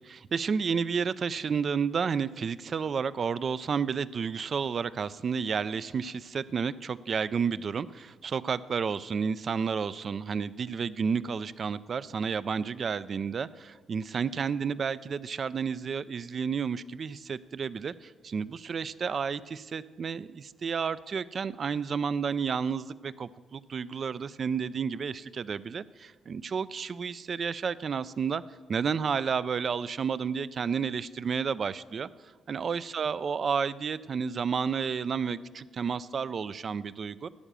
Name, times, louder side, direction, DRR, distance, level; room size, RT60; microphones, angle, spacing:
voice 1, 0.0-28.4 28.7-32.1 32.5-37.3, right 6 dB, 45° right, 17 dB, 0.4 m, -31 dB
12.0 x 8.8 x 6.8 m, 1.4 s
cardioid pair, 90°, 0 cm